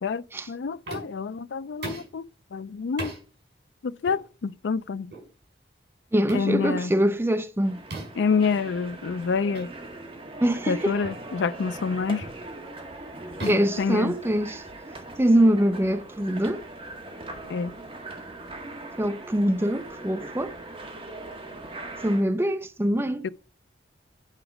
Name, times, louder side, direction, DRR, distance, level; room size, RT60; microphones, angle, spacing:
voice 1, 0.0-2.3 2.5-3.1 3.8-5.1 6.3-6.9 8.2-9.7 10.7-12.3 13.4-14.1 17.5-17.8 23.2-23.3, left 5 dB, 70° left, 0.4 m, -27 dB
sound 1, 0.9-1.3 1.8-2.2 3.0-3.2 4.0-4.2 5.1-5.3 6.3-6.5 7.9-8.3 9.5-9.7 10.1-10.3 11.0-11.3 12.2-12.4 13.4-14.6, right 2 dB, 65° right, 5.1 m, -38 dB
voice 2, 6.1-7.8 10.4-10.9 13.5-14.6 15.2-16.6 19.0-20.5 22.0-23.2, right 1 dB, 15° right, 0.4 m, -23 dB
sound 2, 7.6-22.2, right 2 dB, 30° right, 1.5 m, -40 dB
9.0 x 4.9 x 4.9 m
head